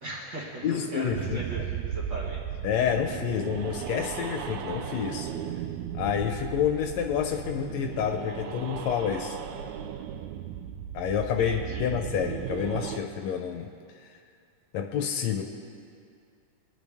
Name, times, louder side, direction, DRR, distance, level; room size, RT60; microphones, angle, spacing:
voice 1, 0.0-2.4 11.2-11.9, right 2 dB, 45° right, -4 dB, 1.9 m, -38 dB
voice 2, 0.6-1.7 2.6-5.3 5.9-9.4 10.9-13.7 14.7-15.4, left 8 dB, 75° left, 5 dB, 1.8 m, -29 dB
sound 1, 1.1-13.0, right 9 dB, 80° right, 1.9 m, -36 dB
24.0 x 10.0 x 3.5 m, 2.3 s
omnidirectional pair, 3.4 m